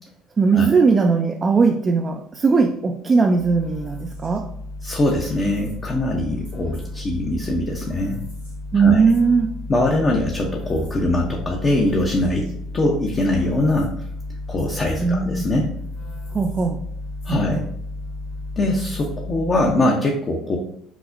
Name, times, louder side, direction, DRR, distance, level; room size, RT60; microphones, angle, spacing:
voice 1, 0.4-4.5 8.7-9.5 15.0-15.5 16.3-16.8 17.3-17.7, right 5 dB, 30° right, 4 dB, 0.3 m, -19 dB
sound 1, 3.3-19.9, left 2 dB, 80° left, 1.3 m, -33 dB
voice 2, 4.8-8.2 8.7-9.1 9.7-12.5 12.7-13.9 14.5-15.7 17.3-17.6 18.6-20.6, left 1 dB, 35° left, 0 dB, 0.6 m, -22 dB
5.8 x 2.0 x 2.6 m, 0.69 s
hypercardioid pair, 65°, 0 cm